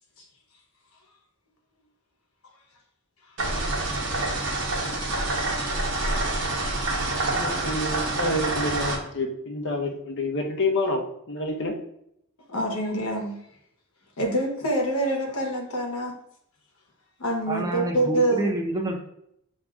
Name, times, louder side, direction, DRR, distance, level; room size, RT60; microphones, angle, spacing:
sound 1, 3.4-9.0, right 2 dB, 60° right, 0.9 m, -27 dB
voice 1, 7.3-11.8, left 2 dB, 55° left, 1 dB, 0.8 m, -28 dB
voice 2, 12.5-13.3 14.2-16.1 17.2-18.5, right 1 dB, 80° left, 1 dB, 1.0 m, -26 dB
voice 3, 17.5-19.1, right 1 dB, 15° right, 1 dB, 0.6 m, -28 dB
7.3 x 2.7 x 2.3 m, 0.74 s
head